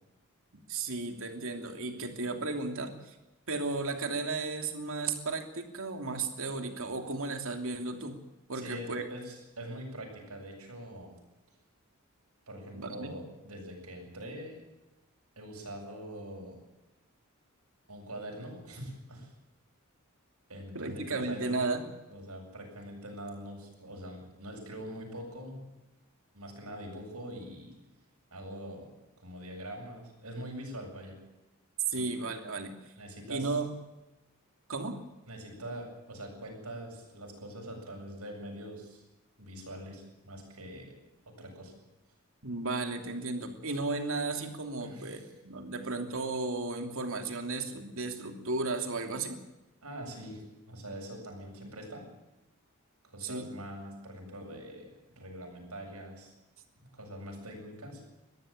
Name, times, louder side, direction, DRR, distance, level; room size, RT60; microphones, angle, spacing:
voice 1, 0.7-3.2 3.5-8.2 8.5-9.0 12.7-13.1 20.7-21.9 31.9-32.7 33.3-33.7 34.7-35.0 42.4-49.4 53.2-53.5, right 3 dB, 65° right, 5 dB, 3.0 m, -34 dB
voice 2, 8.5-11.1 12.5-14.6 15.4-16.6 17.9-19.3 20.5-21.6 22.1-25.7 26.3-27.7 28.3-28.9 29.2-31.2 32.0-32.1 33.0-33.5 35.3-39.0 39.4-40.9 41.3-41.7 44.8-45.3 49.8-50.4 50.7-52.1 53.0-56.3 56.8-58.0, right 1 dB, 90° right, 1 dB, 7.8 m, -43 dB
22.0 x 14.5 x 9.0 m, 1.0 s
head